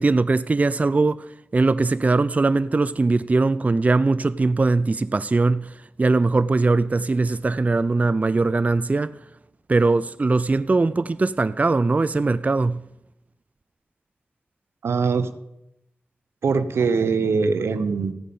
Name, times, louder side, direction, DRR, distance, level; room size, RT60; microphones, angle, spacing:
voice 1, 0.0-9.2 9.7-12.8, right 3 dB, 35° right, 0.4 m, -21 dB
voice 2, 14.8-15.3 16.4-18.1, right 5 dB, 85° right, 0.8 m, -22 dB
15.5 x 5.1 x 8.5 m
cardioid pair, 50°, 4 cm